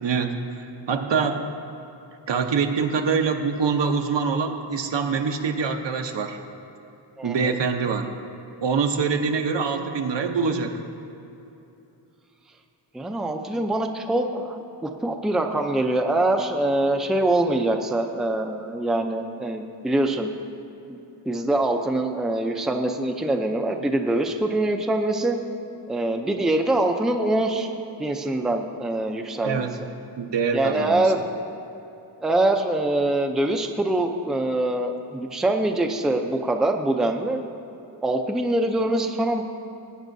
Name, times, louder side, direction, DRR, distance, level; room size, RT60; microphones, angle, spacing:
voice 1, 0.0-1.4 2.3-6.4 7.2-8.1 8.6-10.8 29.4-29.8 30.2-31.1, right 5 dB, 75° right, 5 dB, 0.8 m, -24 dB
voice 2, 7.2-7.5 12.9-20.3 20.9-21.0 21.3-25.4 25.9-27.7 28.0-29.7 30.5-31.3 32.2-37.4 38.0-39.4, right 1 dB, ahead, 4 dB, 0.4 m, -24 dB
18.5 x 9.1 x 2.6 m, 2.9 s
wide cardioid pair, 160°, 44 cm